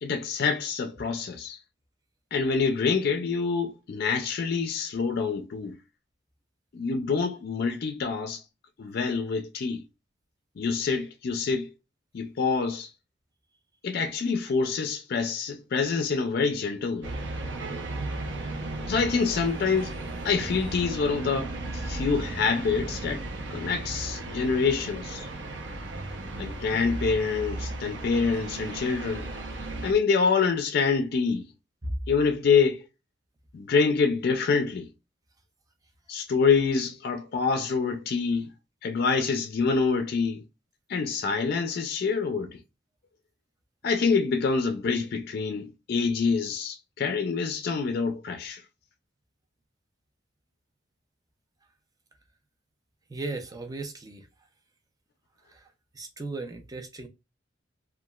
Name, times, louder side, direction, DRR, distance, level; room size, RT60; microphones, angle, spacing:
voice 1, 0.0-1.6 2.3-5.8 6.7-8.4 8.8-9.8 10.6-11.7 12.1-12.9 13.8-17.1 18.9-19.9 20.2-23.3 23.5-25.3 26.4-29.3 29.8-31.5 32.1-32.8 33.5-34.9 36.1-38.5 38.8-40.4 40.9-42.6 43.8-48.6, left 5 dB, 55° left, 0.4 m, -26 dB
sound 1, 17.0-29.9, right 2 dB, 70° right, 0.6 m, -35 dB
voice 2, 53.1-54.3 55.5-55.7 55.9-57.1, right 2 dB, 20° right, 0.4 m, -36 dB
2.8 x 2.3 x 2.2 m
head